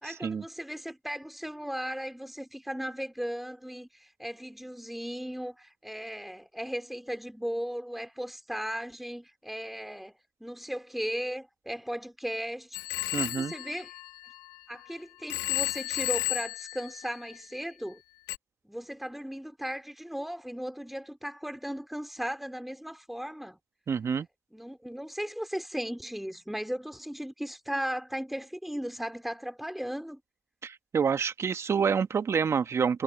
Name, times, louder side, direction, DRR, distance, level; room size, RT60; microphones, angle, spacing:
voice 1, 0.0-10.2 10.4-12.8 13.2-13.9 14.7-18.0 18.6-23.6 24.5-30.2, equal, ahead, 3.8 m, -36 dB
Telephone, 12.7-14.9 15.3-17.6 18.3-18.4, left 21 dB, 85° left, 2.9 m, -34 dB
voice 2, 13.1-13.5 23.9-24.3 30.6-33.0, right 6 dB, 50° right, 2.1 m, -27 dB
hypercardioid pair, 50°, 6 cm